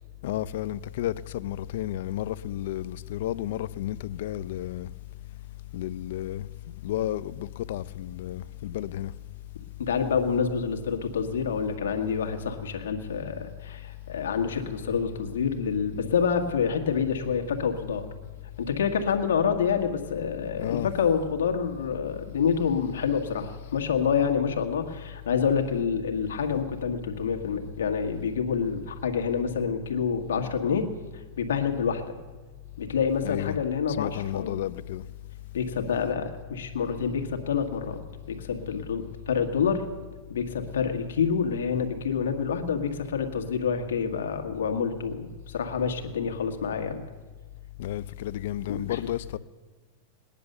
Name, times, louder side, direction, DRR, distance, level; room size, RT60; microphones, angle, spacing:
voice 1, 0.2-4.9 5.7-6.5 6.8-9.1 20.6-20.9 33.2-33.6 33.9-35.0 47.8-49.4, left 13 dB, 70° left, 0.5 m, -32 dB
voice 2, 9.8-18.1 18.6-30.9 31.1-32.1 32.8-34.6 35.5-38.0 38.3-39.9 40.3-47.0 48.7-49.0, left 6 dB, 90° left, 1.8 m, -27 dB
19.5 x 10.5 x 6.8 m
hypercardioid pair, 130°, 0 cm